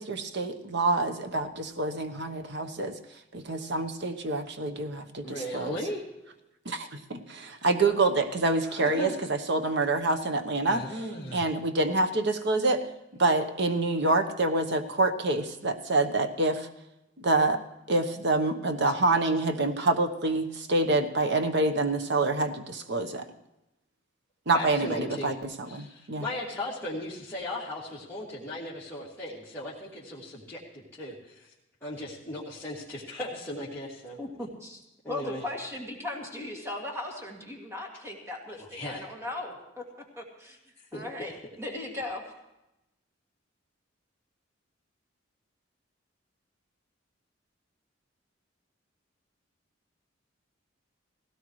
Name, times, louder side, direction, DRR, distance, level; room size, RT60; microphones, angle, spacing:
voice 1, 0.0-3.0 3.3-5.8 6.6-10.8 11.3-12.8 13.2-16.7 17.2-17.6 17.9-23.3 24.5-26.3, right 2 dB, 60° right, 7 dB, 1.1 m, -27 dB
voice 2, 5.2-6.0 8.7-9.2 10.7-11.4 24.5-25.3 25.7-31.5 31.8-34.2 35.0-35.4 38.6-39.1 40.9-41.0, left 1 dB, 15° left, -10 dB, 2.4 m, -37 dB
voice 3, 34.2-34.8 35.1-39.8 40.2-40.6 40.9-41.3 41.6-42.3, left 2 dB, 15° right, -1 dB, 2.3 m, -37 dB
18.5 x 17.0 x 3.2 m, 0.91 s
head